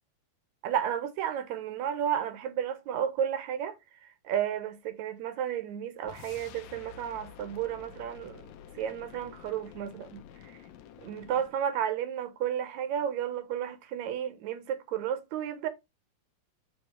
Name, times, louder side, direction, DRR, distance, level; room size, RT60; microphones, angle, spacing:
voice 1, 0.6-3.8 4.2-8.5 8.7-10.6 11.0-15.7, right 9 dB, 70° right, 1.8 m, -32 dB
sound 1, 6.0-11.6, left 9 dB, 75° left, 1.7 m, -50 dB
9.4 x 3.3 x 4.3 m
omnidirectional pair, 4.3 m